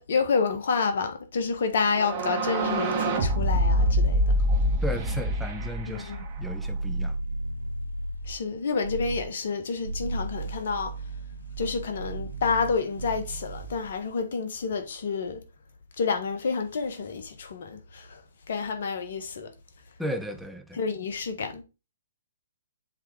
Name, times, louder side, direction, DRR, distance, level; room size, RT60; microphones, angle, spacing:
voice 1, 0.0-4.2 5.9-6.2 8.3-10.9 11.6-15.4 16.0-18.2 18.5-19.5 20.8-21.6, left 5 dB, 55° left, 1.4 m, -29 dB
sound 1, 1.8-6.7, equal, 30° right, 1.8 m, -25 dB
voice 2, 4.8-7.2 20.0-20.8, equal, ahead, 0.7 m, -35 dB
sound 2, 5.8-8.4 8.8-9.3 9.7-14.0, right 2 dB, 85° right, 1.6 m, -35 dB
7.6 x 3.7 x 4.6 m
figure-of-eight pair, 125°, 0 cm